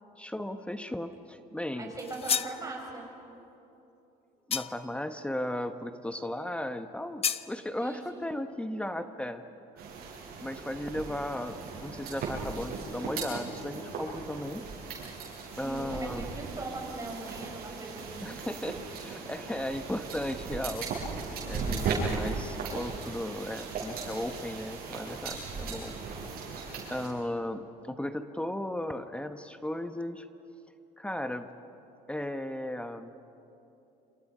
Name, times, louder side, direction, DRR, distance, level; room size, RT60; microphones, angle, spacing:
voice 1, 0.2-1.9 4.5-9.5 10.4-14.6 15.6-16.3 18.2-21.2 21.4-26.0 26.9-30.3 31.0-31.5 32.1-33.1, left 1 dB, 5° left, 8 dB, 1.0 m, -36 dB
voice 2, 1.8-3.1 7.8-8.2 15.6-18.4, right 2 dB, 20° right, 0 dB, 6.8 m, -40 dB
sound 1, 2.0-2.6 4.5-5.0 7.2-7.5, left 8 dB, 35° left, 0.7 m, -31 dB
sound 2, 9.8-27.1, right 4 dB, 65° right, 7.5 m, -37 dB
28.0 x 27.0 x 5.5 m, 2.9 s
cardioid pair, 105°, 17 cm